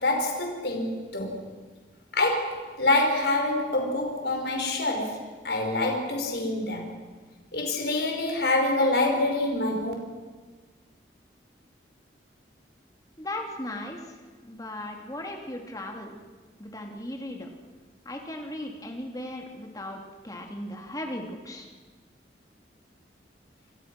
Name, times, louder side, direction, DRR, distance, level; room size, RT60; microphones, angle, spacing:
voice 1, 0.0-1.4 2.1-6.9 7.5-9.9, left 2 dB, 65° left, 2 dB, 5.0 m, -26 dB
voice 2, 13.2-16.2 16.6-17.5 18.0-21.7, left 1 dB, 20° left, 2 dB, 3.1 m, -37 dB
28.5 x 25.0 x 6.3 m, 1.4 s
head